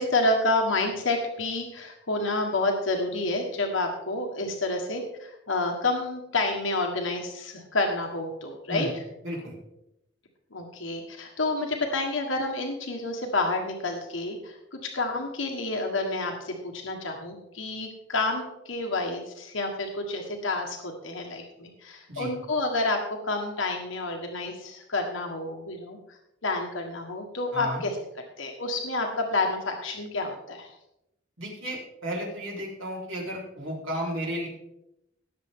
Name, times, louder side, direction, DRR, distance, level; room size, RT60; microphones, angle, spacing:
voice 1, 0.0-9.0 10.5-14.6 14.9-26.0 26.4-28.0 28.4-30.7, left 2 dB, 80° left, 2 dB, 1.5 m, -29 dB
voice 2, 9.2-9.6 22.1-22.3 27.5-27.8 31.4-34.5, equal, 85° right, -2 dB, 4.1 m, -33 dB
18.5 x 7.0 x 3.7 m, 0.86 s
head